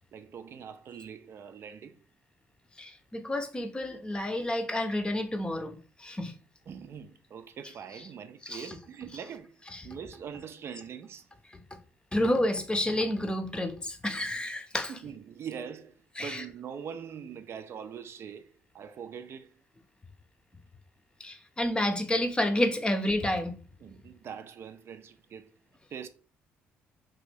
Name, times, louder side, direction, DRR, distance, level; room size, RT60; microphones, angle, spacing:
voice 1, 0.1-2.0 6.7-9.5 9.8-11.3 15.0-19.5 23.8-25.5 25.9-26.1, right 7 dB, 55° right, 0.4 m, -43 dB
voice 2, 2.8-6.3 8.5-8.8 9.7-9.8 12.1-14.9 16.2-16.4 21.2-23.6, left 1 dB, 15° left, 0.6 m, -30 dB
3.0 x 2.5 x 3.3 m
cardioid pair, 80°, 5 cm